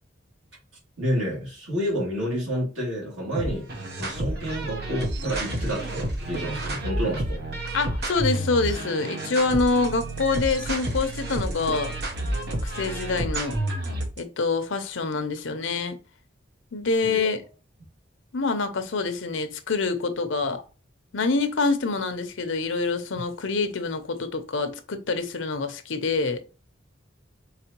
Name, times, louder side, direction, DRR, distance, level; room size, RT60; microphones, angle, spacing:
voice 1, 1.0-3.7 4.0-7.4 17.0-17.2, equal, 80° right, 2.7 m, -29 dB
sound 1, 3.4-14.2, right 1 dB, 55° right, 0.9 m, -30 dB
voice 2, 7.7-11.9 12.5-13.6 14.2-16.0 16.7-17.4 18.3-20.6 21.1-26.4, left 3 dB, 80° left, 0.7 m, -26 dB
4.8 x 3.6 x 3.0 m
head